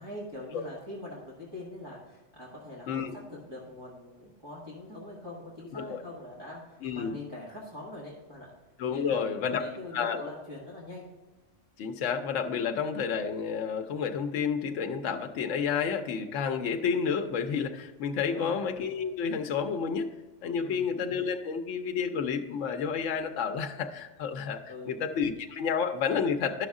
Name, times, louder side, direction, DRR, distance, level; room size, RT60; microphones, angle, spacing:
voice 1, 0.0-8.5 8.9-11.1 18.2-18.6 20.6-20.9 24.7-25.0, left 1 dB, 20° right, -7 dB, 1.6 m, -43 dB
voice 2, 6.8-7.1 8.8-9.6 9.9-10.2 11.8-26.7, left 6 dB, 80° left, 5 dB, 1.0 m, -30 dB
11.0 x 6.2 x 3.6 m, 1.1 s
omnidirectional pair, 1.3 m